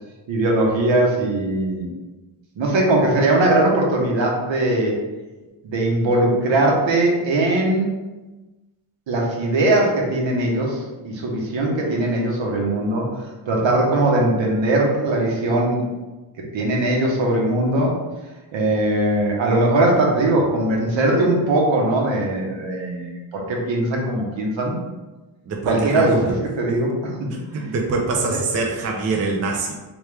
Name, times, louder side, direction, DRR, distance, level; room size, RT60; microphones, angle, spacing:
voice 1, 0.3-1.9 2.6-4.9 5.6-7.9 9.1-13.1 13.5-15.8 16.5-18.0 18.5-24.8 25.7-27.3 28.3-28.4, right 2 dB, 65° right, -1 dB, 1.0 m, -20 dB
voice 2, 25.5-26.1 27.3-29.7, right 3 dB, 35° right, 0 dB, 0.4 m, -24 dB
3.5 x 3.1 x 3.2 m, 1.1 s
wide cardioid pair, 150°, 48 cm